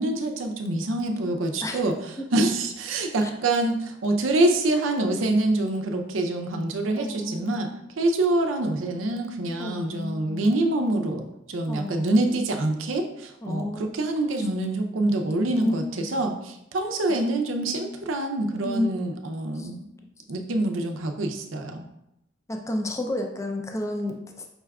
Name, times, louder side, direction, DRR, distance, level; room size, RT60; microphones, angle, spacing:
voice 1, 0.0-7.7 8.0-19.9 20.3-21.8, right 2 dB, 85° right, 4 dB, 0.5 m, -26 dB
voice 2, 7.0-7.6 9.6-10.5 11.7-12.4 13.4-13.9 15.3-16.1 17.1-17.2 18.7-18.9 19.6-19.7 22.5-24.2, left 1 dB, 15° left, 3 dB, 0.4 m, -31 dB
5.5 x 3.5 x 2.3 m, 0.85 s
head